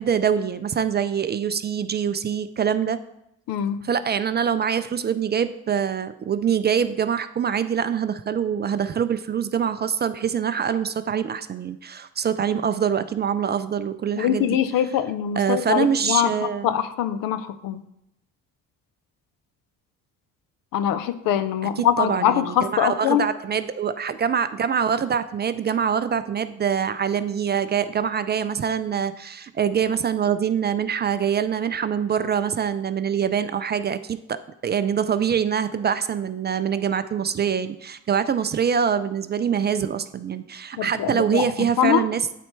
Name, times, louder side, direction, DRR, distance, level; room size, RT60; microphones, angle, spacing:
voice 1, 0.0-3.0 3.8-14.5 15.4-16.7 21.8-42.2, right 7 dB, 30° right, 12 dB, 0.4 m, -24 dB
voice 2, 3.5-3.8 14.2-17.8 20.7-23.3 40.8-41.5 41.8-42.1, left 10 dB, 65° left, 12 dB, 0.7 m, -23 dB
8.2 x 4.2 x 4.5 m, 0.80 s
supercardioid pair, 65°, 36 cm